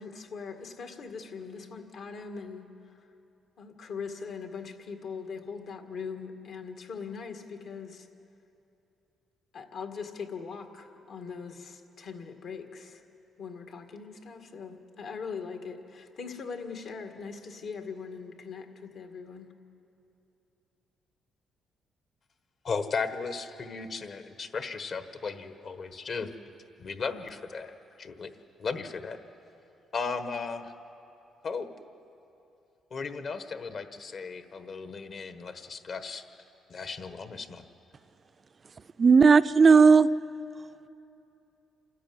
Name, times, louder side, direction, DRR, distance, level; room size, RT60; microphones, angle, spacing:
voice 1, 0.0-2.7 3.6-8.1 9.5-13.0 13.4-19.5, left 5 dB, 70° left, 5 dB, 1.9 m, -41 dB
voice 2, 22.6-26.3 26.8-28.3 28.6-29.2 29.9-30.7 31.4-31.7 32.9-36.2 36.7-37.6, left 4 dB, 55° left, 9 dB, 1.4 m, -36 dB
voice 3, 39.0-40.1, right 5 dB, 40° right, 14 dB, 0.5 m, -16 dB
27.5 x 13.0 x 9.5 m, 2.8 s
cardioid pair, 90°, 0 cm